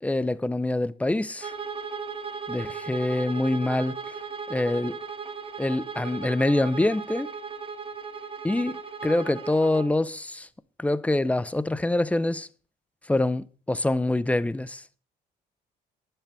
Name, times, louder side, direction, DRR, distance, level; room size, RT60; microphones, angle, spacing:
voice 1, 0.0-1.5 2.5-4.0 4.5-5.0 5.6-7.3 8.4-10.5 10.8-12.5 13.1-14.8, left 2 dB, 10° left, 0.6 m, -25 dB
Bowed string instrument, 1.4-9.9, right 5 dB, 30° right, 1.5 m, -37 dB
11.0 x 7.4 x 6.8 m
cardioid pair, 110°, 17 cm